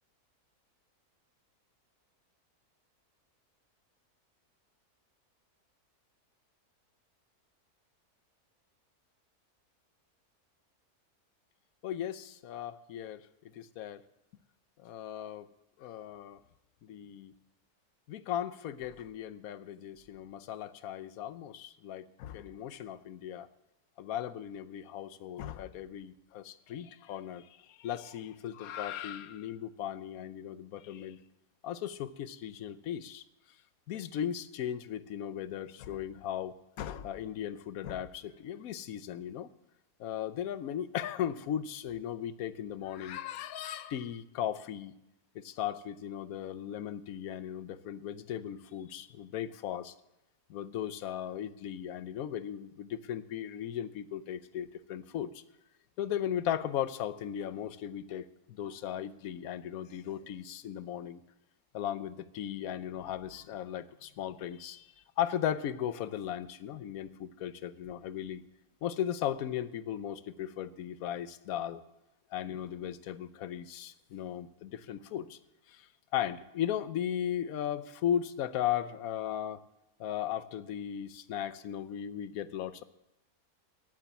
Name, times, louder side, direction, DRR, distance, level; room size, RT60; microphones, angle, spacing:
voice 1, 11.8-13.2 13.5-14.0 14.8-15.5 15.8-16.4 16.8-17.3 18.1-23.5 24.0-31.2 31.6-33.2 33.9-39.5 40.0-44.9 45.3-49.9 50.5-55.4 56.0-61.2 61.7-64.9 65.2-68.4 68.8-71.8 72.3-75.4 75.7-79.6 80.0-82.8, left 10 dB, 75° left, 14 dB, 1.1 m, -37 dB
10.5 x 8.8 x 7.1 m, 0.89 s
omnidirectional pair, 1.6 m